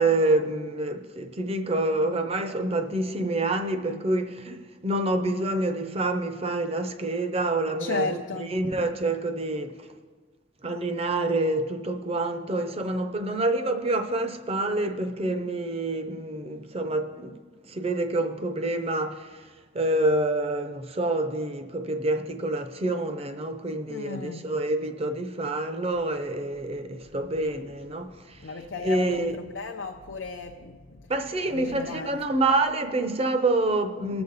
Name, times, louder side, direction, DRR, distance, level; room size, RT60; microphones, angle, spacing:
voice 1, 0.0-4.6 4.8-9.9 10.6-17.4 17.7-19.3 19.7-28.4 28.8-29.4 31.1-34.2, right 2 dB, 30° right, 0.7 m, -27 dB
voice 2, 7.8-8.6 23.9-24.5 28.4-31.0 31.5-32.2, left 4 dB, 70° left, 0.6 m, -35 dB
20.0 x 6.9 x 4.0 m
head